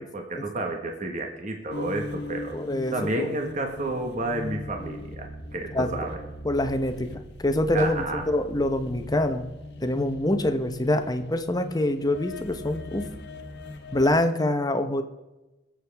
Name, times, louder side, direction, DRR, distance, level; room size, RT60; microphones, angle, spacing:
voice 1, 0.0-2.6 2.9-6.2 7.7-8.2, right 2 dB, 45° right, 3 dB, 1.5 m, -31 dB
sound 1, 1.7-14.2, left 2 dB, 65° left, 1.3 m, -39 dB
voice 2, 2.5-3.3 5.7-6.1 6.4-9.5 9.8-13.1 13.9-15.0, left 1 dB, 20° left, 7 dB, 0.9 m, -25 dB
22.0 x 7.6 x 3.5 m, 1.1 s
head